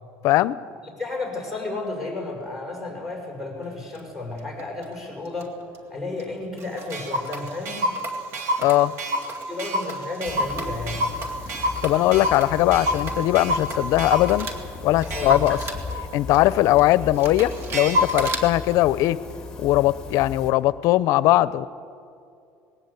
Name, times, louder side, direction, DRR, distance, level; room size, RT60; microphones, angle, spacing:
voice 1, 0.2-0.6 8.6-8.9 11.8-14.5 14.8-15.6 16.1-19.2 19.6-21.7, left 16 dB, 65° left, 17 dB, 0.6 m, -20 dB
voice 2, 0.8-5.5 5.9-7.9 9.5-11.1 15.1-15.5, left 2 dB, 5° right, -1 dB, 5.6 m, -32 dB
Clock, 3.9-4.0 4.6-4.8 5.4-5.5 5.7-5.8 6.2-6.3 6.6-14.6 15.0-18.4, equal, 50° right, 2.3 m, -28 dB
sound 1, 10.2-20.5, left 4 dB, 10° left, 2.5 m, -37 dB
20.0 x 17.5 x 8.1 m, 2.5 s
cardioid pair, 130°, 6 cm